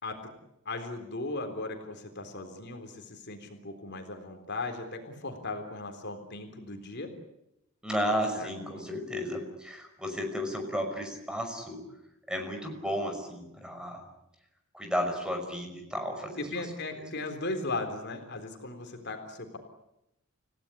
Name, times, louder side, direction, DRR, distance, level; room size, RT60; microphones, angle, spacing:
voice 1, 0.0-0.3 0.7-7.1 8.3-8.9 16.4-19.6, left 2 dB, 55° left, 5 dB, 3.8 m, -37 dB
voice 2, 7.8-11.8 12.3-14.1 14.7-16.4, equal, 5° right, 4 dB, 5.7 m, -33 dB
29.5 x 17.0 x 10.0 m, 0.86 s
head